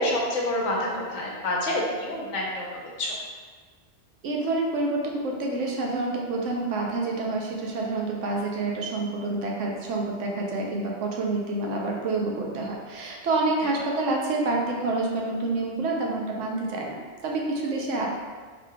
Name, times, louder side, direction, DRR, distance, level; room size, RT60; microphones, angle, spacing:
voice 1, 0.0-3.1 13.6-13.7, left 1 dB, 80° left, -2 dB, 1.1 m, -28 dB
voice 2, 4.2-17.0 17.2-18.1, right 2 dB, 75° right, -1 dB, 1.0 m, -28 dB
3.9 x 3.2 x 2.2 m, 1.5 s
omnidirectional pair, 1.3 m